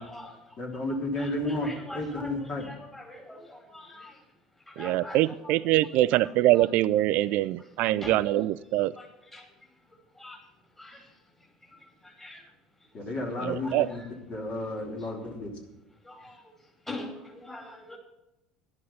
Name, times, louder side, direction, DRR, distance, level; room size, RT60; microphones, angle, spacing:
voice 1, 0.0-4.3 4.7-6.7 7.3-8.4 8.9-10.5 10.8-12.5 12.8-12.9 13.6-14.1 15.0-15.2 16.0-18.0, left 2 dB, 15° left, 2 dB, 5.5 m, -45 dB
voice 2, 0.6-1.7 1.9-2.7 12.9-14.0 14.3-15.5, left 2 dB, 40° left, 0 dB, 3.3 m, -32 dB
voice 3, 4.8-8.9 13.4-13.9, right 15 dB, 55° right, 17 dB, 0.4 m, -24 dB
11.5 x 11.0 x 5.6 m, 0.95 s
hypercardioid pair, 70°, 3 cm